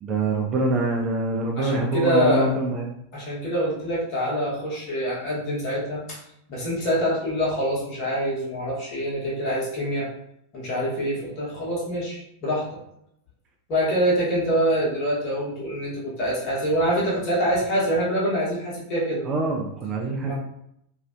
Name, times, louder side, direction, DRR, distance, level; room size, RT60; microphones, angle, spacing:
voice 1, 0.0-2.9 19.2-20.3, right 2 dB, 25° right, 0 dB, 0.4 m, -25 dB
voice 2, 1.6-2.5 3.1-6.2 6.5-10.1 10.5-12.8 13.7-19.3 20.2-20.3, equal, 40° left, -5 dB, 0.9 m, -25 dB
2.5 x 2.0 x 2.4 m, 0.75 s
figure-of-eight pair, 90°, 0 cm